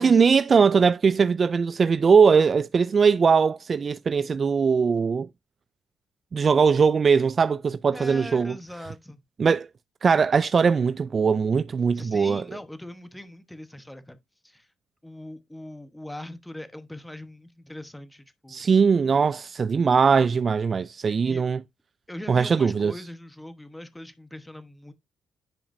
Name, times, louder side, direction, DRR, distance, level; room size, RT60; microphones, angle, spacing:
voice 1, 0.0-5.3 6.3-8.6 9.4-9.7 10.0-12.4 18.5-21.6 22.3-22.9, right 5 dB, 40° right, 0.3 m, -20 dB
voice 2, 7.9-9.2 11.9-14.2 14.4-14.7 15.0-18.7 21.2-21.4 22.1-24.9, left 1 dB, 5° left, 1.1 m, -41 dB
10.5 x 4.9 x 2.6 m
cardioid pair, 90°, 0 cm